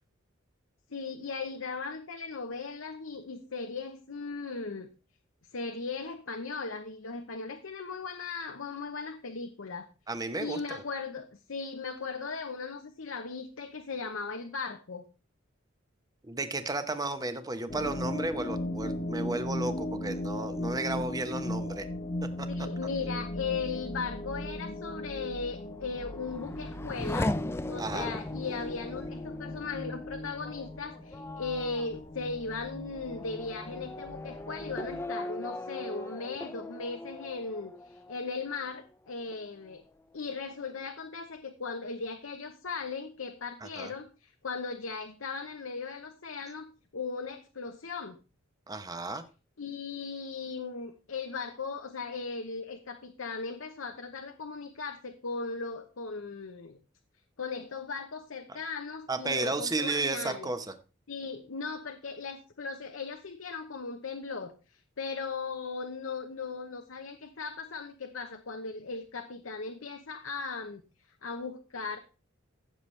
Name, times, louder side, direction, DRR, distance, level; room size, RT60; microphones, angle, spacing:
voice 1, 0.9-4.9 5.5-9.9 10.4-15.1 20.6-20.7 22.5-27.4 27.7-39.8 40.1-48.2 49.6-56.8 57.4-60.5 61.1-70.8 71.2-72.0, left 4 dB, 80° left, 6 dB, 0.9 m, -38 dB
voice 2, 10.1-10.8 16.2-21.8 22.4-22.5 27.8-28.1 43.6-43.9 48.7-49.2 59.1-60.6, right 2 dB, 20° right, 9 dB, 0.9 m, -33 dB
sound 1, 17.7-35.1, left 1 dB, 30° left, 1.1 m, -38 dB
Race car auto racing / Accelerating revving vroom, 25.7-38.9 39.3-40.0, left 1 dB, 10° left, 0.4 m, -39 dB
15.5 x 7.0 x 3.3 m, 0.33 s
head